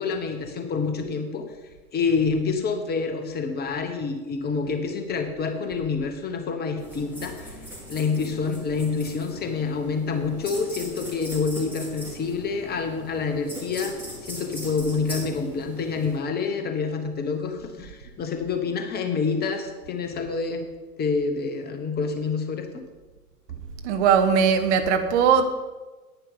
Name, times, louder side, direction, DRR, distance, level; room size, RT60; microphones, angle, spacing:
voice 1, 0.0-1.4 1.9-7.6 7.9-22.8, left 5 dB, 20° left, 6 dB, 1.2 m, -27 dB
sound 1, 6.8-16.2, equal, 5° right, 3.7 m, -40 dB
voice 2, 23.8-25.4, right 7 dB, 50° right, 8 dB, 1.1 m, -19 dB
9.9 x 9.5 x 5.6 m, 1.2 s
figure-of-eight pair, 95°, 45 cm